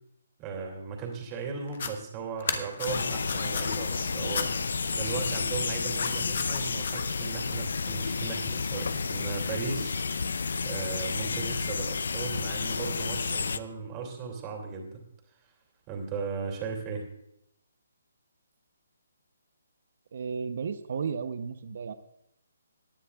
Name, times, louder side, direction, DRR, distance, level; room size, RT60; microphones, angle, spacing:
voice 1, 0.4-4.5 4.9-9.9 10.6-15.0 15.9-17.1, right 5 dB, 20° right, 1 dB, 2.7 m, -36 dB
sound 1, 1.7-1.9 2.4-3.8 4.3-4.5 5.9-7.0, left 6 dB, 55° left, 1.2 m, -34 dB
sound 2, 2.8-13.6, left 4 dB, 70° left, 0.5 m, -31 dB
voice 2, 20.1-21.9, right 6 dB, 55° right, 9 dB, 0.8 m, -33 dB
19.0 x 10.0 x 2.4 m, 0.78 s
hypercardioid pair, 155°, 0 cm